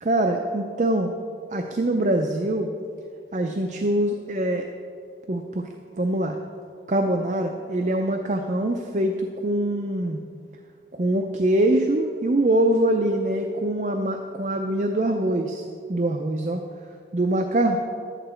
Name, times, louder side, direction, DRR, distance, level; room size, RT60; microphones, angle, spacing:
voice 1, 0.0-1.1 1.5-2.7 3.3-4.7 5.3-5.7 6.0-6.4 6.9-10.2 10.9-15.6 15.9-16.6 17.1-17.8, right 1 dB, 40° right, 4 dB, 0.5 m, -23 dB
11.5 x 9.0 x 4.4 m, 2.2 s
head